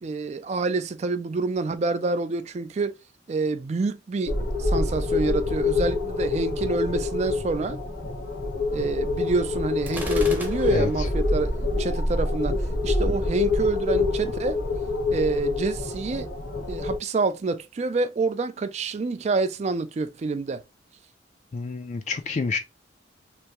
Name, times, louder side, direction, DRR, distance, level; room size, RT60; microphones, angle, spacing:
voice 1, 0.0-2.9 3.3-4.3 4.6-7.8 8.7-12.6 12.8-14.6 15.1-16.3 16.7-20.6, right 3 dB, 35° right, 0.3 m, -27 dB
sound 1, 4.3-17.0, left 3 dB, 80° left, 1.1 m, -26 dB
Gunshot gunfire, 9.9-11.1, right 1 dB, 10° right, 0.7 m, -35 dB
voice 2, 10.7-11.1 21.5-22.6, left 4 dB, 40° left, 0.3 m, -29 dB
3.4 x 2.7 x 2.9 m
head